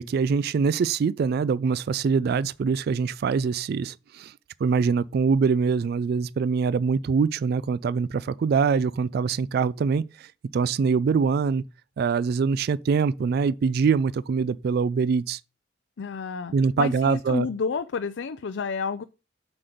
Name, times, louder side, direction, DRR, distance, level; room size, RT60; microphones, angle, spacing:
voice 1, 0.0-4.3 4.6-11.6 12.0-15.4 16.5-17.5, right 5 dB, 55° right, 0.3 m, -24 dB
voice 2, 16.0-19.0, left 5 dB, 70° left, 0.4 m, -30 dB
7.7 x 6.0 x 5.0 m
head